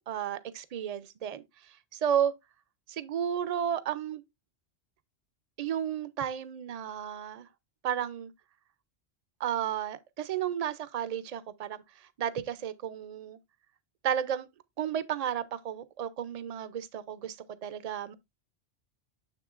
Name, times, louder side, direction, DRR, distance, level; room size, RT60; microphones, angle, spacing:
voice 1, 0.1-1.4 1.9-2.3 2.9-4.2 5.6-7.5 7.8-8.3 9.4-11.8 12.2-13.4 14.0-14.5 14.8-18.1, right 9 dB, 45° right, 0.5 m, -32 dB
6.7 x 6.7 x 2.4 m
omnidirectional pair, 1.1 m